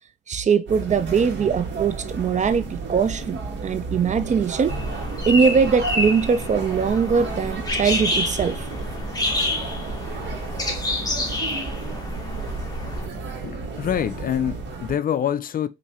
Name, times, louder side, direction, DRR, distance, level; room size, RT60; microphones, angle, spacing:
voice 1, 0.3-4.8 5.3-8.6, right 6 dB, 35° right, 0.5 m, -21 dB
sound 1, 0.7-15.0, right 3 dB, 70° right, 1.5 m, -32 dB
sound 2, 4.7-13.1, left 2 dB, 20° left, 1.1 m, -28 dB
voice 2, 13.4-15.7, left 9 dB, 45° left, 0.4 m, -26 dB
4.2 x 2.7 x 2.8 m
cardioid pair, 90°, 20 cm